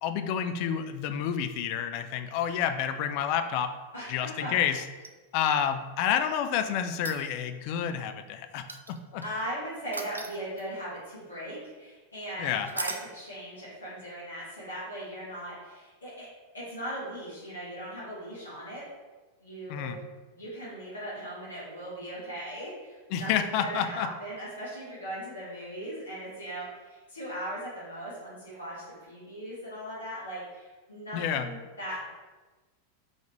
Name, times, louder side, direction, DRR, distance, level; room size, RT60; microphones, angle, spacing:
voice 1, 0.0-3.7 4.1-4.8 5.3-9.2 12.4-12.7 19.7-20.0 23.1-24.1 31.1-31.5, left 8 dB, 45° left, 9 dB, 0.3 m, -29 dB
voice 2, 3.9-4.5 9.2-16.3 16.5-18.8 19.4-20.0 20.3-32.1, right 1 dB, 75° left, -8 dB, 1.3 m, -39 dB
sound 1, 4.9-5.7 6.9-7.6 8.7-9.3 9.9-10.8 12.7-13.1 15.4-15.5, right 3 dB, 80° right, 0.3 m, -38 dB
3.8 x 3.5 x 3.0 m, 1.3 s
figure-of-eight pair, 90°, 0 cm